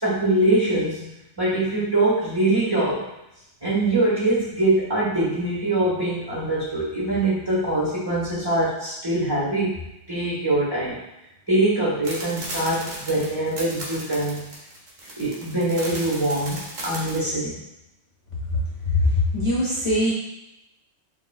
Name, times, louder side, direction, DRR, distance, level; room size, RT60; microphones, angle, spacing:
voice 1, 0.0-3.1 3.6-9.7 10.1-11.0 11.5-14.5 15.2-17.6, right 2 dB, 20° right, -8 dB, 1.2 m, -23 dB
sound 1, 12.0-17.2, right 1 dB, 80° right, 1.5 m, -35 dB
voice 2, 18.8-20.1, left 2 dB, 25° left, -8 dB, 1.2 m, -21 dB
4.7 x 3.7 x 2.2 m, 0.89 s
omnidirectional pair, 1.3 m